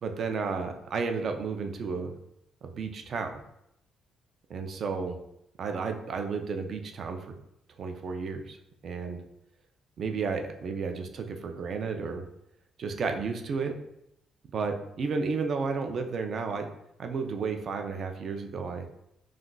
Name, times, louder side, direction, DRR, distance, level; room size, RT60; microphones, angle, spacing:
voice 1, 0.0-2.1 2.6-3.4 4.5-5.2 5.6-7.2 7.8-8.6 8.8-9.2 10.0-12.2 12.8-13.7 14.5-16.7 17.0-18.9, right 5 dB, 50° right, 5 dB, 0.4 m, -32 dB
2.4 x 2.2 x 3.7 m, 0.79 s
cardioid pair, 125°, 0 cm